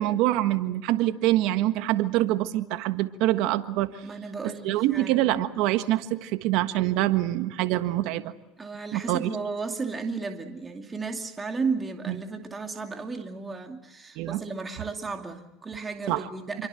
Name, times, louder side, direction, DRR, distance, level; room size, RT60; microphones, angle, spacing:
voice 1, 0.0-4.0 4.4-8.3 8.9-9.3 12.1-12.2 14.2-14.4 16.1-16.2 16.6-16.7, right 15 dB, 65° right, 10 dB, 1.5 m, -25 dB
voice 2, 4.0-5.3 8.6-16.7, right 4 dB, 20° right, 4 dB, 2.5 m, -34 dB
27.0 x 23.5 x 7.8 m, 0.97 s
hypercardioid pair, 90°, 0 cm